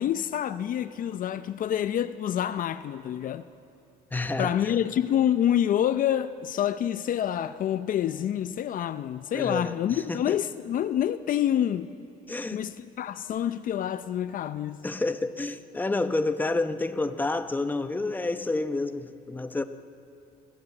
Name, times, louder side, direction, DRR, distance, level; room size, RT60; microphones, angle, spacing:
voice 1, 0.0-3.5 4.4-11.9 12.5-14.8, left 10 dB, 55° left, 0.6 m, -27 dB
voice 2, 4.1-4.8 9.3-10.4 12.3-12.7 14.8-19.6, left 2 dB, 10° left, 0.8 m, -29 dB
29.0 x 12.5 x 8.3 m
cardioid pair, 110°, 17 cm